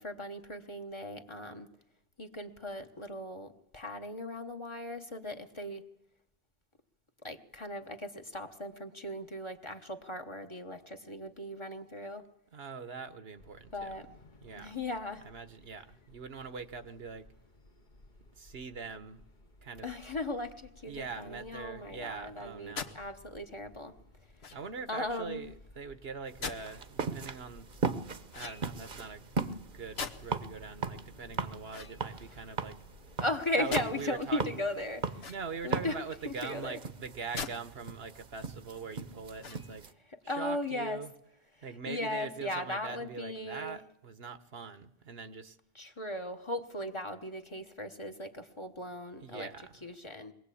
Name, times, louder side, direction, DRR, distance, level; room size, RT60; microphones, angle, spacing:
voice 1, 0.0-1.7 2.2-5.8 7.2-12.2 13.7-14.1 14.5-15.2 19.8-23.9 24.9-25.4 33.2-35.3 35.6-36.0 36.2-36.8 40.3-41.0 41.6-43.8 45.7-49.5 49.8-50.3, left 1 dB, 30° left, 5 dB, 1.2 m, -37 dB
voice 2, 12.5-14.1 14.4-14.8 15.2-17.3 18.4-19.2 19.6-19.9 20.9-23.0 24.5-27.7 28.3-29.3 29.7-32.8 33.6-34.6 35.3-39.9 40.2-41.1 41.6-45.6 49.2-49.8, right 5 dB, 70° right, 11 dB, 1.3 m, -42 dB
sound 1, 13.4-33.2, left 2 dB, 50° left, 1.4 m, -58 dB
sound 2, 22.8-23.0 24.4-24.8 26.4-26.7 28.3-28.9 30.0-30.5 31.6-32.5 33.7-33.9 35.1-35.7 37.3-37.6 38.1-38.2 39.3-39.9, left 5 dB, 75° left, 1.5 m, -41 dB
sound 3, 26.3-39.9, right 4 dB, 55° right, 1.1 m, -39 dB
22.5 x 17.5 x 8.5 m, 0.81 s
omnidirectional pair, 1.1 m